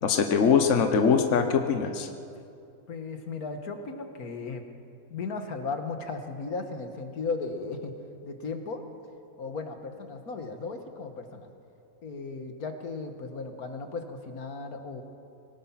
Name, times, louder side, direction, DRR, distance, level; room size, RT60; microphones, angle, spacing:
voice 1, 0.0-2.1, left 6 dB, 60° left, 5 dB, 1.4 m, -22 dB
voice 2, 2.9-4.6 5.1-7.9 8.2-8.8 9.4-11.5 12.0-15.0, left 4 dB, 85° left, 6 dB, 2.0 m, -36 dB
24.5 x 19.0 x 5.8 m, 2.5 s
omnidirectional pair, 1.5 m